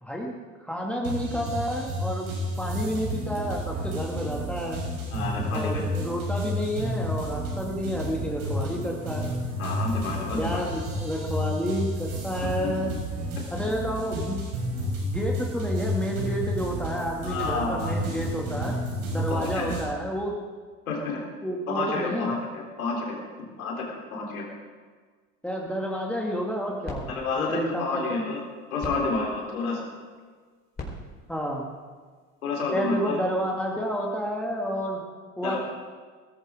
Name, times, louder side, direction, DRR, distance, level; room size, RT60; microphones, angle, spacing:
voice 1, 0.0-2.3 2.6-4.8 5.5-9.3 10.3-12.9 13.5-14.4 15.0-18.8 19.1-20.4 21.4-22.3 25.4-28.2 31.3-31.6 32.7-35.0 35.4-35.6, equal, 5° left, -2 dB, 2.3 m, -30 dB
sound 1, 1.0-19.8, equal, 70° right, 5.9 m, -31 dB
voice 2, 5.1-5.7 9.6-10.6 17.2-18.0 19.1-19.7 20.9-21.2 21.7-23.2 23.6-24.5 27.1-28.4 28.7-29.8 32.4-33.2 35.4-35.6, left 3 dB, 80° left, -1 dB, 3.8 m, -29 dB
sound 2, 26.3-32.7, left 1 dB, 20° left, 4.5 m, -44 dB
20.0 x 14.0 x 3.8 m, 1.5 s
hypercardioid pair, 70°, 42 cm